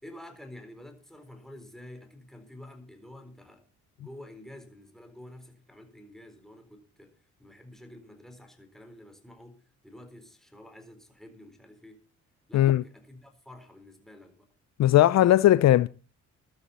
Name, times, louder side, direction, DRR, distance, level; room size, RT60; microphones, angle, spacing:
voice 1, 0.0-3.7 4.0-12.0 12.5-14.5, left 1 dB, ahead, 4.1 m, -49 dB
voice 2, 14.8-15.9, left 13 dB, 60° left, 0.5 m, -18 dB
14.5 x 12.5 x 4.2 m
cardioid pair, 90°, 30 cm